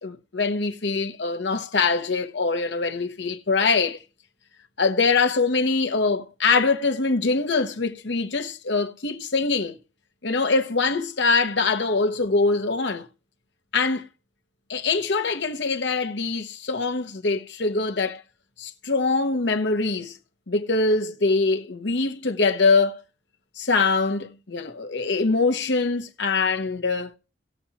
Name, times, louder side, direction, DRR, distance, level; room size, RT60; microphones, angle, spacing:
voice 1, 0.0-4.0 4.8-9.8 10.2-13.1 13.7-14.1 14.7-18.2 18.6-20.2 20.5-23.0 23.6-27.1, left 4 dB, 70° left, 1.0 m, -23 dB
18.5 x 7.0 x 2.9 m
head